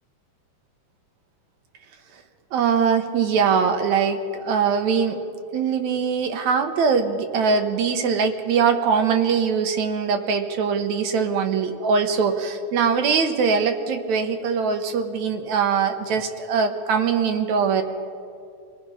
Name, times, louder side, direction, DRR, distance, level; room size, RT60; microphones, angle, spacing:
voice 1, 2.5-5.2 5.5-17.8, right 6 dB, 65° right, 6 dB, 2.3 m, -22 dB
26.0 x 17.5 x 5.7 m, 2.5 s
omnidirectional pair, 3.8 m